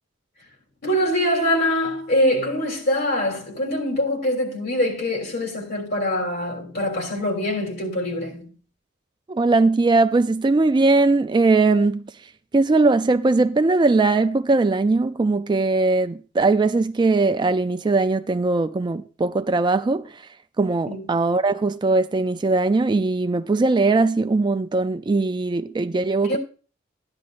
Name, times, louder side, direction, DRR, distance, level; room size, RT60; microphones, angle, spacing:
voice 1, 0.8-8.5 20.9-21.0 26.2-26.4, left 1 dB, 60° left, 3.2 m, -24 dB
voice 2, 9.3-12.1 12.5-20.2 20.6-26.4, right 3 dB, 25° right, 0.4 m, -20 dB
14.0 x 10.5 x 2.5 m
head